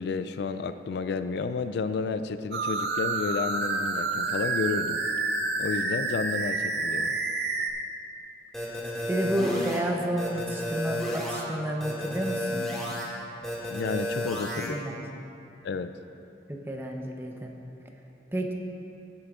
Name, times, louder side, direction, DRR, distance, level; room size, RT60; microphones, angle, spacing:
voice 1, 0.0-5.0 5.6-7.1 13.7-14.8 15.6-15.9, left 5 dB, 65° left, 11 dB, 0.3 m, -31 dB
sound 1, 2.5-7.7, right 3 dB, 65° right, 0.8 m, -29 dB
sound 2, 8.5-9.8 10.2-11.4 11.8-13.0 13.4-14.7, left 1 dB, 5° left, 2.1 m, -32 dB
voice 2, 9.1-12.7 14.7-15.0 16.5-17.5 18.3-18.5, right 1 dB, 15° right, 1 dB, 0.8 m, -30 dB
16.0 x 8.4 x 2.5 m, 2.9 s
head